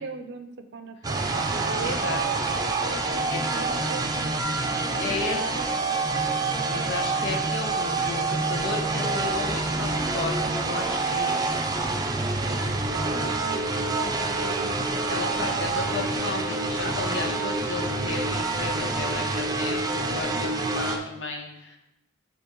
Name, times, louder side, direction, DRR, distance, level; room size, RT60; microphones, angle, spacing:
voice 1, 0.0-2.4 2.8-6.1 6.6-6.8 12.5-15.7, right 3 dB, 65° right, 9 dB, 0.6 m, -40 dB
sound 1, 1.0-21.0, right 3 dB, 20° right, 0.5 m, -27 dB
voice 2, 1.8-2.2 3.3-3.4 5.0-5.7 6.6-11.7 15.1-21.8, left 3 dB, 75° left, 1 dB, 1.3 m, -34 dB
8.7 x 3.0 x 4.5 m, 0.87 s
head